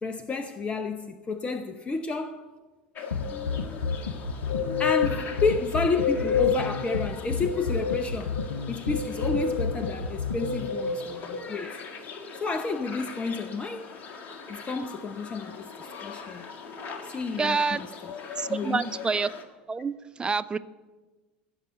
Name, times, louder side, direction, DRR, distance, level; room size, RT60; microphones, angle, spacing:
voice 1, 0.0-2.5 3.2-3.9 4.8-12.1 12.3-13.9 14.5-16.5 17.0-18.1 18.5-18.9, left 4 dB, 20° left, 0.8 m, -31 dB
sound 1, 3.0-19.4, left 6 dB, 40° left, 1.8 m, -34 dB
sound 2, 3.1-10.7, left 5 dB, 75° left, 0.7 m, -30 dB
voice 2, 17.4-17.8 18.4-19.3 19.7-19.9 20.2-20.6, right 5 dB, 15° right, 0.5 m, -27 dB
15.5 x 6.9 x 8.9 m
figure-of-eight pair, 75°, 5 cm